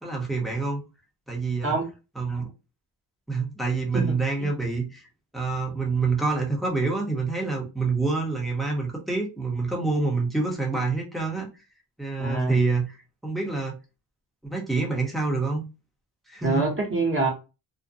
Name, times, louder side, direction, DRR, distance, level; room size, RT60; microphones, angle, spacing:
voice 1, 0.0-0.8 1.3-1.7 2.1-2.5 3.3-5.1 5.3-11.5 12.0-13.0 13.2-13.8 14.5-15.6 16.3-16.7, right 3 dB, ahead, 0.8 m, -27 dB
voice 2, 12.2-12.6 16.4-17.3, right 3 dB, 30° right, 1.2 m, -25 dB
2.5 x 2.2 x 2.6 m
cardioid pair, 100°, 44 cm